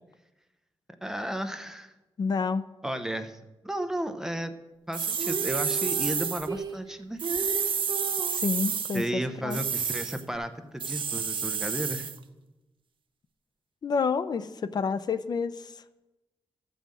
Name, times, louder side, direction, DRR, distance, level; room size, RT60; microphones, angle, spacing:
voice 1, 1.0-1.9 2.8-3.4 3.6-4.5 4.9-7.2 8.9-12.1, right 1 dB, 5° right, 7 dB, 0.7 m, -33 dB
voice 2, 2.2-2.6 8.3-9.6 13.8-15.7, left 5 dB, 45° left, 13 dB, 0.5 m, -29 dB
sound 1, 4.9-6.5 7.2-9.1 9.5-10.2 10.8-12.2, right 6 dB, 60° right, 0.6 m, -30 dB
Female singing, 5.1-8.4 10.3-10.4, right 5 dB, 45° right, 1.0 m, -35 dB
12.5 x 5.4 x 7.6 m, 1.0 s
wide cardioid pair, 165°, 10 cm